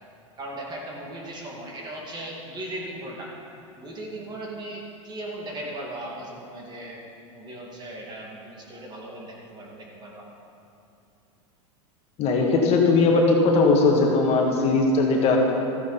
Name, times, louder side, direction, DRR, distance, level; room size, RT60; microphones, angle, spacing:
voice 1, 0.4-3.3 3.8-7.0 7.3-10.3, right 1 dB, 25° right, -2 dB, 2.3 m, -37 dB
voice 2, 12.2-15.4, left 3 dB, 40° left, 0 dB, 1.8 m, -19 dB
14.0 x 9.4 x 4.2 m, 2.7 s
supercardioid pair, 120°, 16 cm